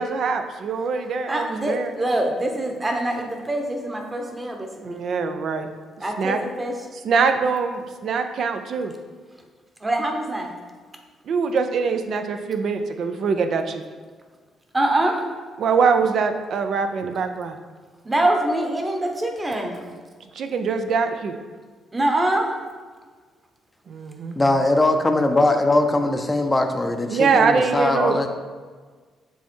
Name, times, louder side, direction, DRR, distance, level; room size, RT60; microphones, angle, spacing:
voice 1, 0.0-1.9 4.8-5.7 6.2-6.4 7.0-8.9 11.3-13.8 15.6-17.6 20.3-21.4 23.9-24.4 27.1-28.3, right 5 dB, 65° right, 7 dB, 0.5 m, -23 dB
voice 2, 1.3-5.0 6.0-6.7 9.8-10.5 14.7-15.3 18.0-19.8 21.9-22.5, right 1 dB, 20° right, 2 dB, 1.0 m, -24 dB
voice 3, 24.4-28.3, left 2 dB, 15° left, 5 dB, 0.6 m, -20 dB
7.3 x 3.5 x 4.4 m, 1.5 s
cardioid pair, 90°, 0 cm